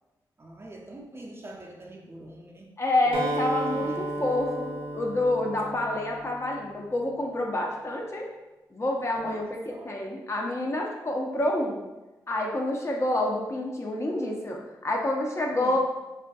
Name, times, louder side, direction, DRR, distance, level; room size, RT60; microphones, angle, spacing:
voice 1, 0.4-2.7 3.0-4.2 9.1-10.0 15.6-15.8, right 1 dB, 30° right, 0 dB, 0.5 m, -44 dB
voice 2, 2.8-8.3 8.7-11.8 12.3-15.8, left 1 dB, 35° left, -1 dB, 0.5 m, -28 dB
Acoustic guitar, 3.1-7.0, right 2 dB, 85° right, 0.4 m, -34 dB
2.5 x 2.4 x 2.2 m, 1.1 s
supercardioid pair, 40°, 9 cm